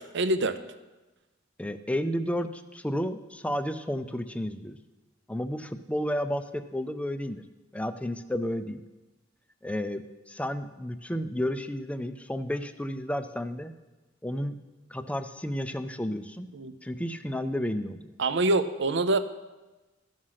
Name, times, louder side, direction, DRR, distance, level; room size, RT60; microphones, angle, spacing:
voice 1, 0.1-0.6 16.5-16.8 18.2-19.2, right 2 dB, 60° right, 12 dB, 0.6 m, -25 dB
voice 2, 1.6-4.8 5.3-7.4 7.7-8.8 9.6-13.7 14.2-14.6 14.9-16.5 16.8-18.1, equal, 5° left, 10 dB, 0.5 m, -32 dB
14.0 x 6.3 x 5.7 m, 1.1 s
head